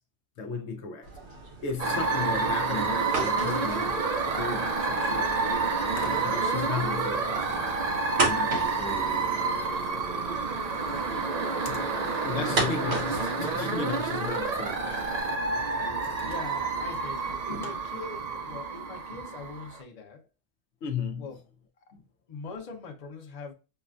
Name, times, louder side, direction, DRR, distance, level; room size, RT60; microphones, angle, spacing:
voice 1, 0.4-1.1 1.6-5.4 6.0-7.9 8.2-8.8 9.5-9.8 11.6-11.8 12.2-15.7 16.0-16.2 17.5-17.7 19.1-19.2 20.8-21.3 21.9-22.0, left 5 dB, 75° left, 0.9 m, -35 dB
sound 1, 1.0-15.2, right 2 dB, 70° right, 1.3 m, -37 dB
sound 2, 1.8-19.8, right 4 dB, 50° right, 0.5 m, -29 dB
sound 3, 8.4-17.7, right 1 dB, 5° left, 0.7 m, -46 dB
voice 2, 11.3-12.4 16.2-20.2 21.2-21.4 22.3-23.5, left 4 dB, 40° left, 0.7 m, -42 dB
5.6 x 2.2 x 2.3 m
omnidirectional pair, 1.2 m